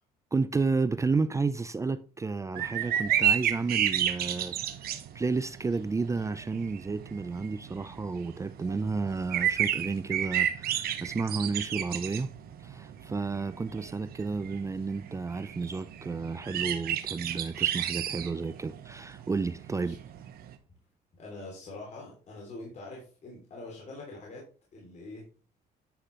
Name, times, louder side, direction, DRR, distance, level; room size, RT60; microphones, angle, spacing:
voice 1, 0.3-4.6 4.8-12.3 12.6-19.9, right 4 dB, 20° right, 0.5 m, -31 dB
sound 1, 2.5-20.5, right 10 dB, 65° right, 1.0 m, -32 dB
voice 2, 21.1-25.3, left 2 dB, 45° left, 3.2 m, -44 dB
10.0 x 5.8 x 3.2 m
cardioid pair, 110°, 17 cm